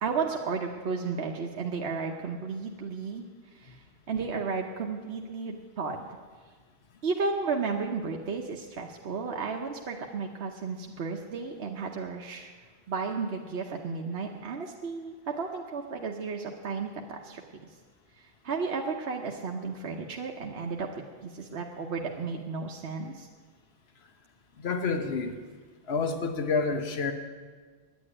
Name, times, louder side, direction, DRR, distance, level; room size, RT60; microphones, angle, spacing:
voice 1, 0.0-6.0 7.0-12.5 12.9-17.7 18.2-23.3, right 4 dB, 80° right, 1 dB, 1.1 m, -33 dB
voice 2, 24.6-25.3 25.9-27.1, left 4 dB, 75° left, 7 dB, 1.3 m, -28 dB
9.6 x 9.2 x 9.8 m, 1.5 s
omnidirectional pair, 1.1 m